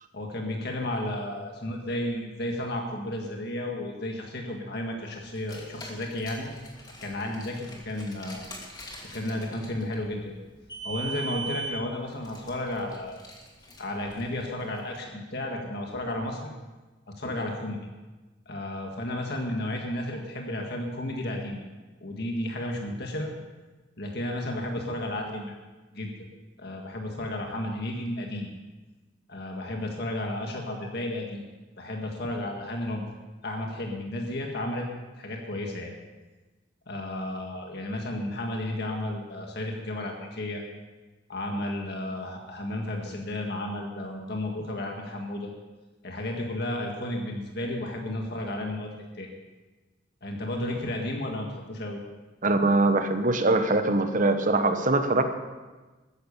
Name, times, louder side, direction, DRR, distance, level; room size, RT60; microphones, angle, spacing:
voice 1, 0.1-6.5 7.0-8.4 9.1-10.3 10.8-13.2 13.8-16.5 17.2-17.8 18.4-21.6 22.0-23.3 24.0-25.5 25.9-26.1 26.6-28.5 29.3-31.5 31.8-33.1 33.4-34.9 35.2-35.9 36.9-40.6 41.3-45.5 46.0-49.3 50.2-52.0, left 1 dB, 55° left, 1 dB, 1.7 m, -33 dB
Car, 5.3-14.8, right 3 dB, 20° left, 2.5 m, -41 dB
voice 2, 52.4-55.2, right 2 dB, 40° right, 8 dB, 1.0 m, -22 dB
14.0 x 10.5 x 6.9 m, 1.2 s
head